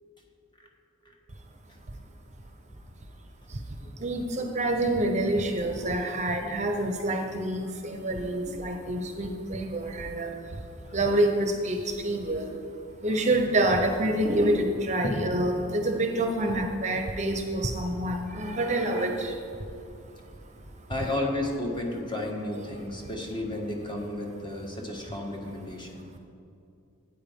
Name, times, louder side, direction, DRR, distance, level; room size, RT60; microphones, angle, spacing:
voice 1, 3.5-20.2 20.5-20.9 22.7-23.1 25.9-26.2, right 1 dB, 35° right, 4 dB, 0.8 m, -28 dB
voice 2, 20.9-26.1, left 1 dB, 20° left, 0 dB, 1.4 m, -32 dB
12.5 x 9.2 x 3.6 m, 2.6 s
head